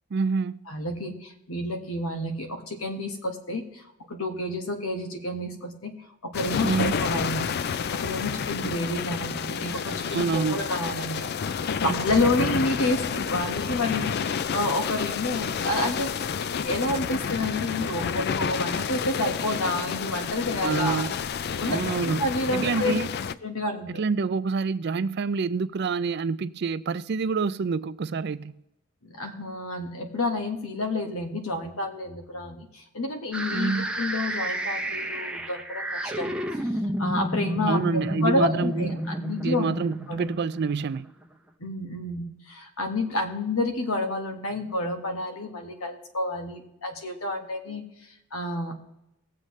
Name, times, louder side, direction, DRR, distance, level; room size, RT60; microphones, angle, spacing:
voice 1, 0.1-0.6 6.6-6.9 10.1-10.6 11.8-12.0 20.6-21.1 21.7-22.2 22.5-23.1 23.9-28.6 33.5-33.9 37.7-39.0 39.4-41.1, right 5 dB, 50° right, 0.4 m, -27 dB
voice 2, 0.7-5.9 6.2-14.2 14.5-16.1 16.6-21.0 21.6-23.0 23.4-24.0 29.0-39.8 40.1-40.3 41.6-48.7, left 2 dB, 85° left, 1.5 m, -29 dB
sound 1, 6.3-23.3, left 6 dB, 50° left, 0.4 m, -30 dB
sound 2, 33.3-41.2, equal, 5° right, 0.7 m, -30 dB
19.0 x 7.7 x 3.2 m
head